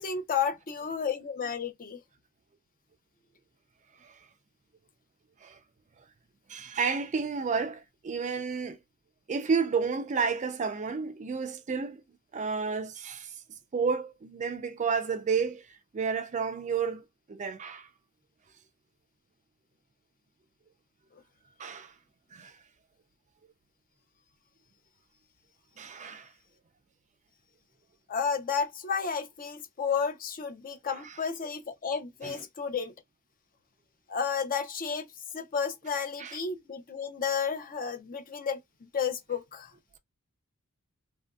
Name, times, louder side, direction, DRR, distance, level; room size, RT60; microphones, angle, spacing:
voice 1, 0.0-2.0 28.1-32.9 34.1-35.1 35.3-39.7, left 6 dB, 40° left, 0.6 m, -32 dB
voice 2, 6.5-8.8 9.3-12.0 12.3-13.3 13.7-15.6 15.9-17.0 17.3-17.9 21.6-21.9 22.3-22.5 25.8-26.3 30.9-31.2 32.2-32.4 36.2-36.4, right 5 dB, 35° right, 0.4 m, -31 dB
2.9 x 2.6 x 2.2 m
head